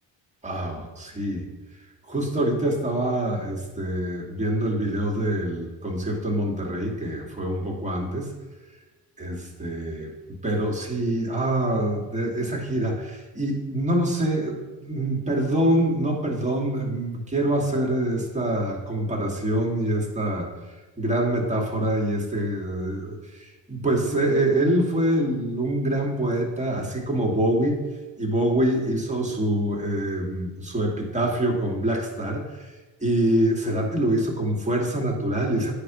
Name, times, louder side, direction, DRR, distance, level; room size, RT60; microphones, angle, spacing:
voice 1, 0.4-1.5 2.1-8.3 9.2-10.1 10.4-20.5 21.0-27.8 28.2-32.7 33.0-35.7, right 1 dB, 15° right, -1 dB, 2.2 m, -25 dB
9.9 x 5.1 x 3.1 m, 1.2 s
hypercardioid pair, 55°, 45 cm